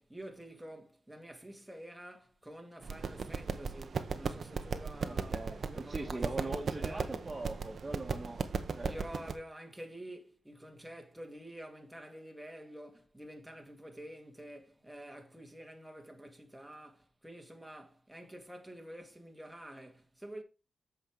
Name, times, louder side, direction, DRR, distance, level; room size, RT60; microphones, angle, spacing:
voice 1, 0.0-7.1 8.8-20.4, right 1 dB, 5° right, 2.1 m, -49 dB
sound 1, 2.8-9.3, right 5 dB, 65° right, 1.0 m, -37 dB
voice 2, 5.1-8.5 8.8-8.9, right 2 dB, 25° right, 2.0 m, -41 dB
8.0 x 5.5 x 4.8 m
cardioid pair, 75°, 0 cm